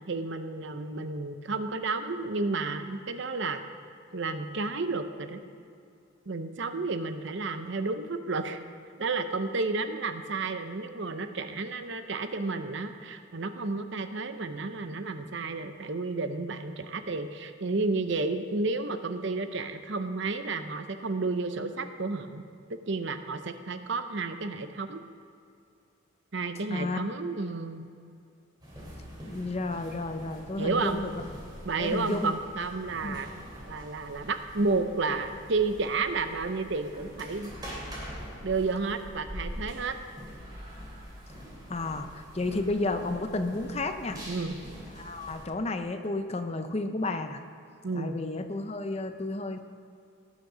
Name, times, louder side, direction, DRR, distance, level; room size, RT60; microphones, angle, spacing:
voice 1, 0.1-3.6 4.1-5.4 6.3-8.6 9.0-25.0 26.3-27.9 30.6-31.0 31.6-33.3 33.7-37.5 38.4-39.9 44.3-44.6 47.8-48.2, right 3 dB, 60° right, 9 dB, 0.7 m, -31 dB
sound 1, 28.6-45.5, equal, 20° right, 2.9 m, -44 dB
voice 2, 29.3-31.1 31.8-32.3 33.0-33.2 41.7-44.2 45.0-47.4 47.9-49.6, left 2 dB, 30° left, 8 dB, 0.6 m, -32 dB
18.0 x 6.6 x 5.0 m, 2.5 s
head